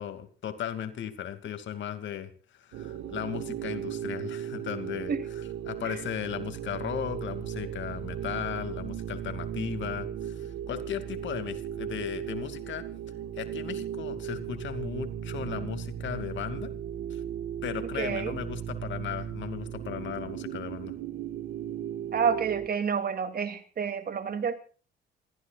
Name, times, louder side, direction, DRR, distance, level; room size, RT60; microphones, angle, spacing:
voice 1, 0.0-5.1 5.7-12.9 13.4-16.7 17.1-17.2 17.6-20.9, left 10 dB, 70° left, 9 dB, 2.5 m, -36 dB
sound 1, 2.7-22.7, right 9 dB, 90° right, 1.6 m, -36 dB
voice 2, 17.9-18.4 22.1-24.6, right 6 dB, 50° right, 9 dB, 2.8 m, -29 dB
27.5 x 15.0 x 2.5 m, 0.39 s
cardioid pair, 90°, 20 cm